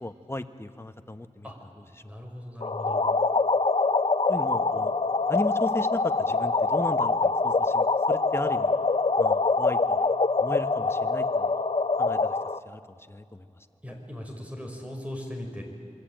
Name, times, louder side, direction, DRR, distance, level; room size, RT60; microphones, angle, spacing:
voice 1, 0.0-1.5 4.3-4.9 5.3-8.7 9.2-10.0 10.4-11.6 12.0-12.4 12.6-12.8 13.1-13.5, left 1 dB, 20° left, 9 dB, 1.3 m, -35 dB
voice 2, 2.0-3.1 13.8-15.6, left 1 dB, 10° right, 1 dB, 6.0 m, -38 dB
sound 1, 2.6-12.6, left 3 dB, 50° left, 0.8 m, -24 dB
27.5 x 22.5 x 9.2 m, 2.5 s
wide cardioid pair, 65°, 12 cm